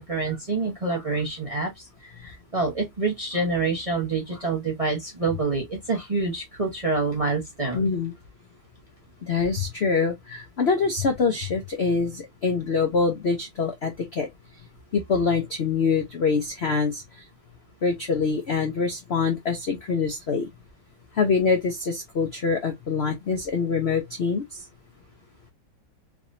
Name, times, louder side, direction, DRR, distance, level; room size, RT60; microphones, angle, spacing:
voice 1, 0.0-7.9, right 3 dB, 25° right, 0.8 m, -27 dB
voice 2, 7.7-8.1 9.2-14.3 14.9-17.0 17.8-20.5 21.1-24.6, left 5 dB, 70° left, 0.6 m, -25 dB
3.5 x 3.5 x 2.6 m
omnidirectional pair, 2.1 m